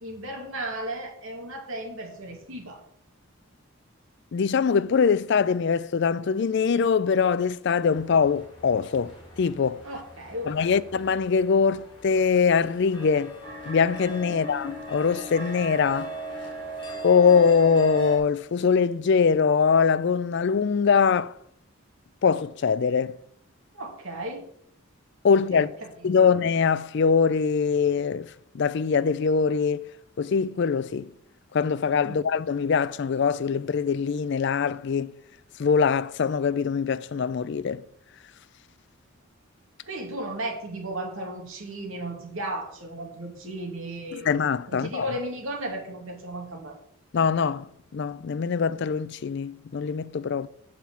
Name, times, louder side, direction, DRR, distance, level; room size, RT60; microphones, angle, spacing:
voice 1, 0.0-2.8 9.8-10.8 14.3-14.5 23.7-24.5 25.5-26.3 32.0-32.2 39.8-44.3 44.7-46.8, right 1 dB, 70° right, 2.3 m, -35 dB
voice 2, 4.3-9.8 10.5-13.3 13.7-16.1 17.0-21.3 22.2-23.1 25.2-25.7 26.0-29.8 30.2-31.1 31.5-35.1 35.6-37.8 44.2-45.1 47.1-50.5, left 6 dB, 55° left, 0.4 m, -23 dB
sound 1, 7.9-18.2, right 2 dB, 25° left, 3.2 m, -39 dB
7.2 x 5.9 x 7.1 m
head